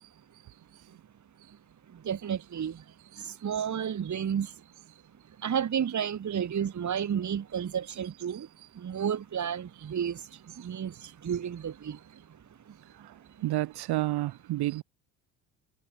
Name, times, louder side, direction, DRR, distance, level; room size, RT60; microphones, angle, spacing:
voice 1, 1.9-2.8 3.2-4.5 5.4-8.5 8.7-12.0, right 8 dB, 40° right, 4.1 m, -32 dB
voice 2, 13.4-14.8, right 16 dB, 65° right, 5.3 m, -30 dB
hypercardioid pair, 60°, 42 cm